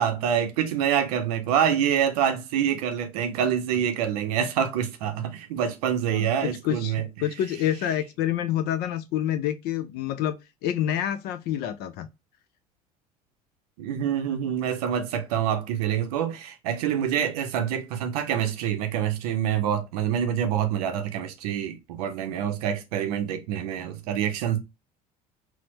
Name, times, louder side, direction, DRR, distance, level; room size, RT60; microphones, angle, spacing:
voice 1, 0.0-7.0 13.8-24.6, right 9 dB, 65° right, 0.6 m, -26 dB
voice 2, 6.1-10.4 10.6-12.1, left 11 dB, 50° left, 0.4 m, -28 dB
4.1 x 2.1 x 2.8 m
figure-of-eight pair, 65°, 20 cm